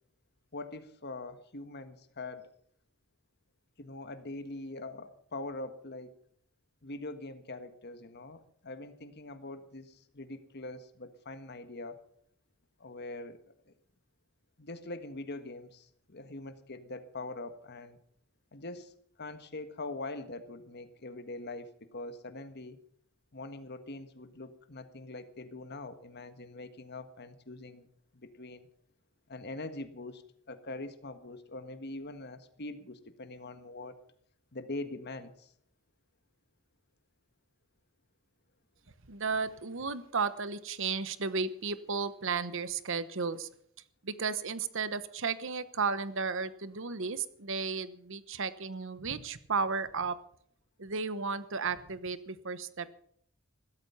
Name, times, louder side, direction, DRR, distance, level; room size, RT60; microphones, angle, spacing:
voice 1, 0.5-2.5 3.8-6.2 6.8-12.0 12.8-13.4 13.7-13.8 14.6-18.0 18.5-18.9 19.2-22.8 23.3-27.9 28.1-28.7 29.3-34.0 34.5-35.5, left 2 dB, 50° left, 9 dB, 1.6 m, -43 dB
voice 2, 39.1-43.5 44.0-50.1 50.8-52.9, right 5 dB, 65° right, 14 dB, 1.1 m, -34 dB
16.0 x 13.5 x 5.6 m, 0.64 s
head